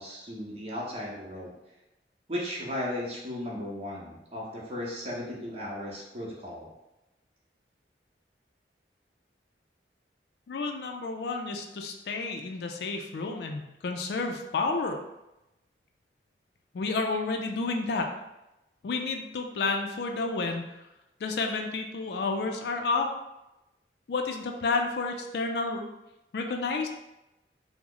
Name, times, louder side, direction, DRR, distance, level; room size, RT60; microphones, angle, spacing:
voice 1, 0.0-1.5 2.3-6.7, left 1 dB, 35° right, -4 dB, 0.8 m, -36 dB
voice 2, 10.5-15.0 16.7-18.1 18.8-20.9 21.2-23.1 24.1-25.8 26.3-26.9, left 3 dB, 70° left, 4 dB, 0.4 m, -30 dB
3.0 x 2.0 x 3.7 m, 0.94 s
head